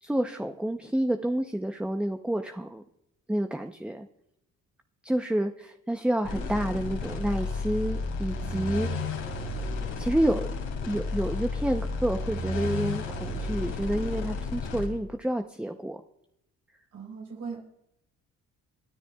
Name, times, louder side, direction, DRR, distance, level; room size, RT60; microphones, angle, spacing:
voice 1, 0.0-2.8 3.3-4.1 5.0-9.1 10.0-10.5 10.8-16.0, right 1 dB, 5° right, 6 dB, 0.7 m, -29 dB
sound 1, 6.2-14.9, left 3 dB, 85° left, 3.5 m, -32 dB
voice 2, 8.4-8.8 16.9-17.6, right 5 dB, 75° right, -2 dB, 4.1 m, -40 dB
27.5 x 10.0 x 2.3 m, 0.81 s
cardioid pair, 90°, 30 cm